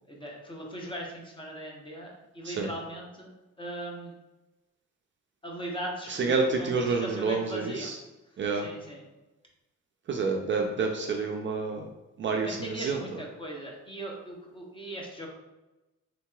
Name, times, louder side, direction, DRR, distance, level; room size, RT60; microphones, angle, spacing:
voice 1, 0.0-3.3 3.6-4.1 5.4-7.9 8.5-9.1 12.4-15.3, right 1 dB, 15° left, -1 dB, 0.7 m, -39 dB
voice 2, 6.1-7.9 8.4-8.6 10.1-11.8 12.2-13.0, right 4 dB, 40° right, 2 dB, 0.4 m, -28 dB
3.7 x 2.8 x 2.3 m, 1.0 s
cardioid pair, 90°, 30 cm